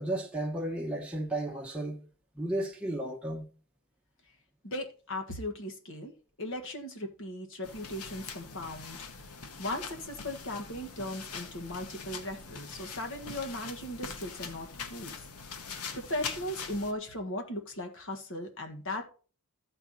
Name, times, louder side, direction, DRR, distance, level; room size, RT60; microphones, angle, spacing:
voice 1, 0.0-2.0 2.4-3.5, right 1 dB, 5° right, 0.9 m, -33 dB
voice 2, 4.6-6.1 6.4-9.0 9.6-15.1 15.9-19.1, left 1 dB, 60° left, 1.7 m, -37 dB
sound 1, 7.6-16.9, left 5 dB, 90° left, 1.1 m, -43 dB
14.0 x 4.6 x 4.1 m
head